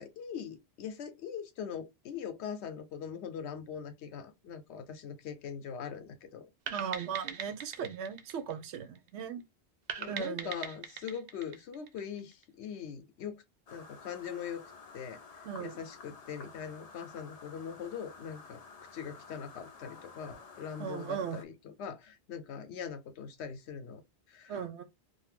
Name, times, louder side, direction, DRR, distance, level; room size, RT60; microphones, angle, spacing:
voice 1, 0.0-6.5 10.0-13.4 13.7-14.6 14.9-15.2 15.6-18.6 18.9-24.0 24.3-24.8, left 7 dB, 90° left, 0.9 m, -42 dB
sound 1, 6.7-9.2 9.9-12.4, right 7 dB, 55° right, 0.5 m, -41 dB
voice 2, 6.7-9.4 10.1-10.6 15.4-15.8 20.8-21.4 24.5-24.8, right 7 dB, 90° right, 0.9 m, -37 dB
sound 2, 13.7-21.4, left 4 dB, 55° left, 0.4 m, -52 dB
2.7 x 2.1 x 3.3 m
omnidirectional pair, 1.1 m